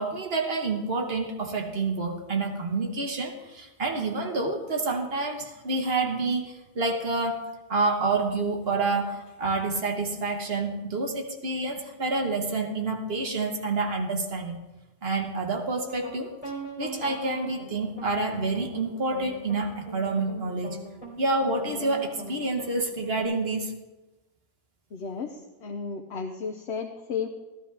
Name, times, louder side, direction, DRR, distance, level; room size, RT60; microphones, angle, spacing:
voice 1, 0.0-14.6 15.0-16.3 16.8-20.8 21.2-23.7, right 3 dB, 70° right, 3 dB, 1.5 m, -28 dB
sound 1, 15.8-23.2, right 2 dB, 35° left, 3.3 m, -41 dB
voice 2, 24.9-27.3, left 6 dB, 85° left, 4 dB, 1.1 m, -33 dB
14.0 x 13.0 x 3.4 m, 1.1 s
omnidirectional pair, 1.1 m